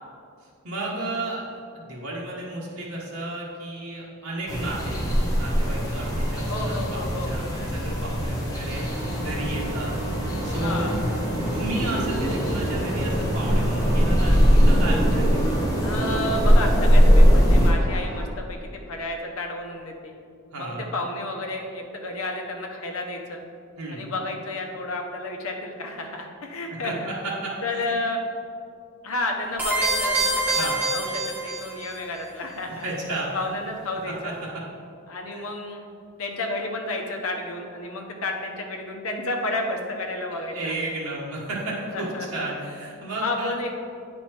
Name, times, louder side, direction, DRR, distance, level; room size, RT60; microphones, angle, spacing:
voice 1, 0.6-5.0 5.3-9.9 10.4-10.9 11.5-15.6 20.5-20.9 23.8-24.0 26.8-28.0 30.6-30.8 32.8-33.3 34.2-34.3 35.3-35.5 40.3-43.5, right 2 dB, 85° right, -5 dB, 1.4 m, -33 dB
sound 1, 4.5-17.7, equal, 15° left, 0.9 m, -21 dB
voice 2, 6.5-7.3 10.5-10.9 15.8-20.1 20.6-23.4 23.9-27.1 27.6-28.2 29.0-32.9 33.3-34.3 35.1-35.9 36.2-40.7 41.9-42.5 43.2-43.8, left 2 dB, 75° left, 2 dB, 0.9 m, -31 dB
sound 2, 8.7-18.3, right 1 dB, 40° right, 1.2 m, -37 dB
sound 3, 29.6-31.9, right 2 dB, 10° right, 1.5 m, -25 dB
8.9 x 4.4 x 4.4 m, 2.4 s
head